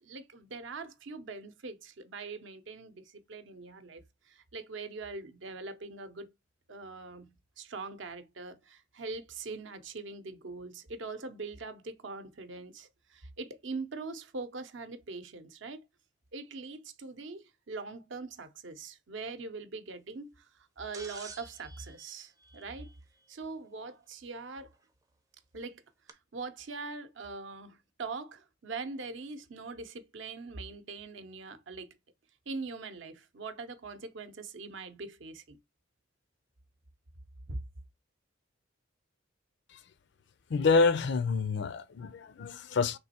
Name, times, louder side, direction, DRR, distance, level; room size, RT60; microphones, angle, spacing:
voice 1, 0.0-6.3 6.7-15.8 16.3-22.9 23.3-24.7 25.5-25.8 26.1-31.9 32.5-35.6 37.5-37.6, right 3 dB, 65° right, 0.7 m, -42 dB
sound 1, 20.9-23.2 24.8-24.9 26.1-26.2, right 4 dB, 15° right, 0.5 m, -50 dB
voice 2, 40.5-43.0, left 4 dB, 55° left, 0.4 m, -27 dB
3.5 x 3.0 x 4.2 m
head